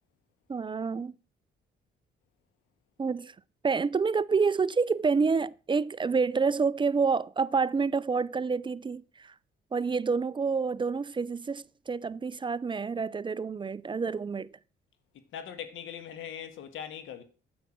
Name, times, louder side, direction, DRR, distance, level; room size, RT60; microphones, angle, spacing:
voice 1, 0.5-1.1 3.0-3.3 3.6-9.3 9.7-14.5, right 5 dB, 25° right, 0.4 m, -28 dB
voice 2, 15.3-17.2, left 9 dB, 80° left, 1.6 m, -40 dB
9.5 x 8.2 x 6.0 m
cardioid pair, 90°, 20 cm